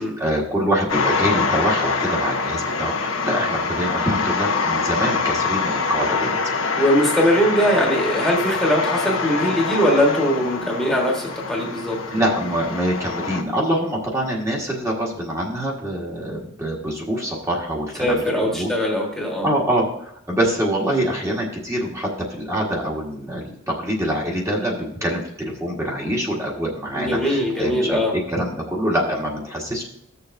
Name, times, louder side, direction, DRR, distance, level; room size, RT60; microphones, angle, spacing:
voice 1, 0.0-6.6 12.1-18.7 19.4-29.8, right 1 dB, 15° right, -3 dB, 1.6 m, -25 dB
sound 1, 0.9-13.4, left 4 dB, 85° left, 1.1 m, -24 dB
voice 2, 6.8-12.0 18.0-19.5 26.9-28.1, equal, ahead, -2 dB, 1.5 m, -21 dB
15.0 x 6.8 x 2.7 m, 0.74 s
head